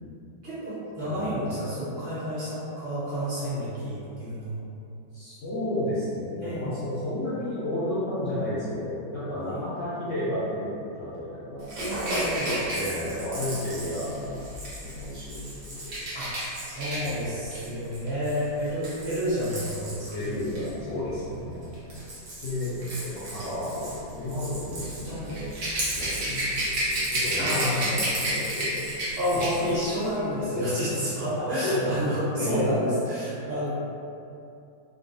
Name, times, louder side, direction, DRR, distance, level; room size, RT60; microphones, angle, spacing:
voice 1, 0.4-4.6 6.4-6.8 9.4-9.6 11.8-12.5 16.1-20.4 20.9-21.0 25.0-25.3 27.4-27.8 29.2-33.7, equal, 35° right, -11 dB, 1.1 m, -30 dB
voice 2, 1.1-1.4 5.1-11.7 12.7-14.4 14.8-16.0 17.0-17.8 19.8-21.7 22.4-25.5 25.9-28.8 29.3-29.4 30.3-31.0 31.4-31.9 32.3-32.7, left 1 dB, 60° left, -12 dB, 0.8 m, -32 dB
Rattle / Rattle (instrument), 11.7-20.7 21.6-29.7 30.0-30.2, right 1 dB, 60° right, 1.3 m, -32 dB
3.8 x 2.3 x 2.6 m, 2.6 s
omnidirectional pair, 2.1 m